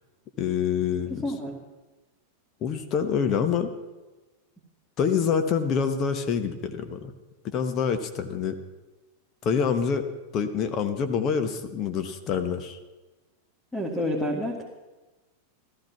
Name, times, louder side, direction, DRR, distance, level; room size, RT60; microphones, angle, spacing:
voice 1, 0.4-1.3 2.6-3.7 5.0-7.1 7.4-8.6 9.4-10.0 10.3-12.8, left 7 dB, 35° left, 7 dB, 1.2 m, -26 dB
voice 2, 1.1-1.6 13.7-14.6, left 1 dB, 5° left, -1 dB, 2.1 m, -29 dB
14.5 x 14.0 x 5.9 m, 1.2 s
figure-of-eight pair, 90°, 0 cm